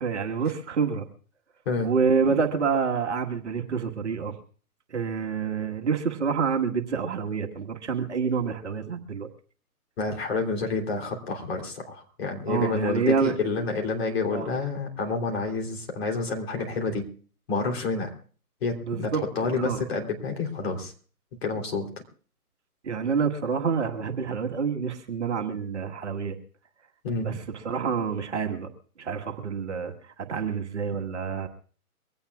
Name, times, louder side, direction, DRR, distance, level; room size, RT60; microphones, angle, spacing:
voice 1, 0.0-1.1 1.8-4.3 4.9-9.3 12.5-13.3 14.3-14.5 18.8-19.2 19.5-19.8 22.8-26.4 27.2-28.7 29.0-29.9 30.3-31.5, right 6 dB, 50° right, 5 dB, 1.7 m, -27 dB
voice 2, 10.0-17.1 17.5-18.1 18.6-20.9 21.4-21.9 27.0-27.4, left 4 dB, 40° left, 2 dB, 3.4 m, -29 dB
23.5 x 17.0 x 2.4 m, 0.42 s
figure-of-eight pair, 150°, 46 cm